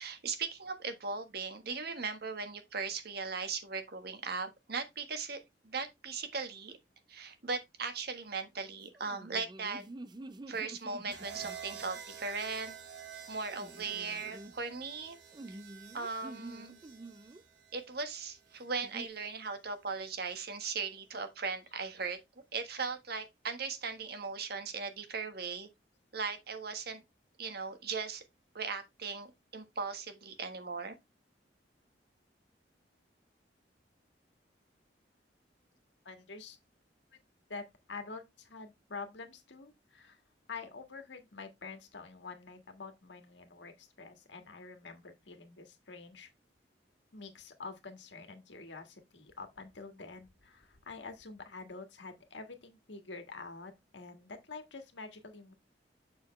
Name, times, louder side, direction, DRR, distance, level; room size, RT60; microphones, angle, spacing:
voice 1, 0.0-6.8 7.1-9.8 10.5-12.7 13.3-15.2 15.5-15.6 15.9-16.8 17.7-22.2 22.5-25.7 26.1-27.0 27.4-28.2 28.5-30.9, right 4 dB, 60° right, 1.4 m, -38 dB
sound 1, 9.0-12.0 13.5-14.5 15.3-17.4 18.8-19.1, right 2 dB, 25° right, 0.5 m, -48 dB
sound 2, 11.1-19.2 20.5-20.8, right 7 dB, 80° right, 2.2 m, -50 dB
voice 2, 36.0-36.6 37.5-40.2 40.5-46.3 47.1-55.5, left 4 dB, 90° left, 1.6 m, -47 dB
6.7 x 6.6 x 3.2 m
head